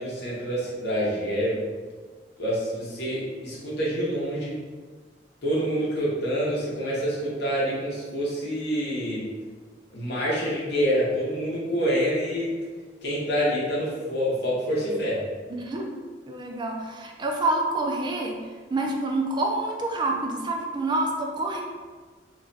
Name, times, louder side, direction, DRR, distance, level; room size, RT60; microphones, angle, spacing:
voice 1, 0.0-1.6 2.4-4.6 5.4-9.3 9.9-12.5 13.0-15.2, equal, 65° left, -6 dB, 0.8 m, -27 dB
voice 2, 15.5-16.0 16.3-18.4 18.7-21.6, right 2 dB, 25° right, 1 dB, 0.4 m, -27 dB
2.4 x 2.2 x 3.8 m, 1.4 s
head